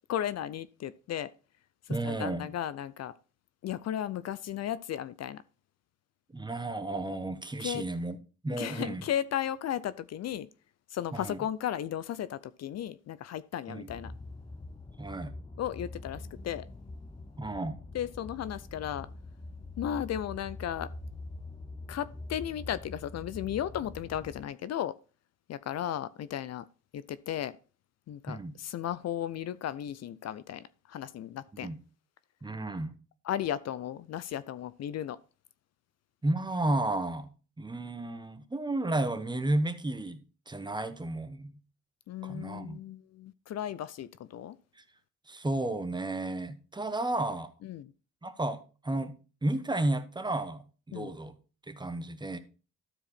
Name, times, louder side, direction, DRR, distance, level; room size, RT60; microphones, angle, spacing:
voice 1, 0.1-1.3 2.0-3.1 3.6-5.4 7.6-7.8 8.6-10.5 10.9-14.1 15.6-16.7 17.9-19.1 19.8-20.9 21.9-24.9 25.5-26.6 26.9-27.5 28.1-30.6 30.9-31.7 33.2-35.2 42.1-44.6 47.6-47.9 50.9-51.1, left 10 dB, 60° left, 0.5 m, -35 dB
voice 2, 1.9-2.5 6.3-8.2 8.4-9.0 11.1-11.4 13.7-13.9 15.0-15.3 17.4-17.8 28.3-28.5 31.5-31.8 32.4-32.9 36.2-37.3 37.6-41.5 42.2-42.8 44.8-44.9 45.3-47.5 48.2-49.1 49.4-51.4 51.7-52.4, right 2 dB, 15° right, 1.0 m, -32 dB
sound 1, 13.9-24.5, left 2 dB, 15° left, 0.7 m, -44 dB
13.0 x 4.7 x 4.2 m
cardioid pair, 90°, 30 cm